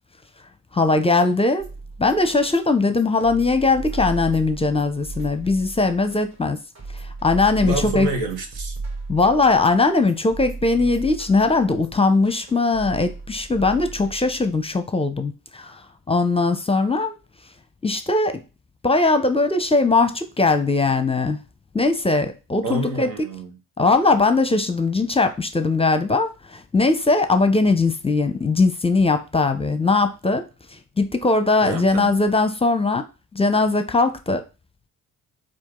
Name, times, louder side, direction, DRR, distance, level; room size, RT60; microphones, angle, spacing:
voice 1, 0.7-1.7 2.0-6.6 6.9-8.1 9.1-15.8 16.1-17.2 17.8-18.4 18.8-21.4 21.7-23.1 23.8-30.5 30.7-33.0 33.3-34.4, left 3 dB, 15° left, 8 dB, 0.6 m, -20 dB
sound 1, 1.6-14.6, right 3 dB, 40° right, 2.1 m, -35 dB
voice 2, 7.6-8.8 22.6-23.5 31.6-32.2, right 3 dB, 85° right, 4 dB, 1.1 m, -28 dB
4.5 x 2.5 x 3.7 m, 0.30 s
hypercardioid pair, 60°, 42 cm